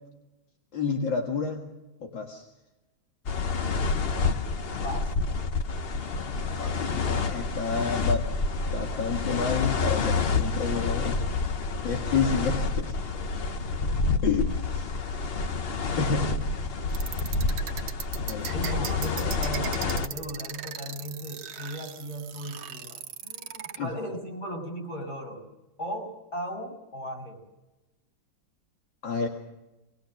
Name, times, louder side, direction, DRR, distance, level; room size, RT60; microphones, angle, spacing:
voice 1, 0.7-1.7 2.0-2.4 6.5-8.3 8.7-11.2 11.8-13.0 14.2-15.0 16.0-16.5 18.3-18.5 23.8-23.9 29.0-29.3, left 5 dB, 70° left, 1 dB, 2.5 m, -29 dB
sound 1, 3.3-20.1, left 4 dB, 50° left, 0.7 m, -28 dB
sound 2, 16.9-23.8, right 8 dB, 65° right, 1.5 m, -38 dB
voice 2, 18.5-25.5 25.8-27.4, equal, 35° left, 1 dB, 6.6 m, -36 dB
22.0 x 20.5 x 6.5 m, 1.0 s
omnidirectional pair, 2.2 m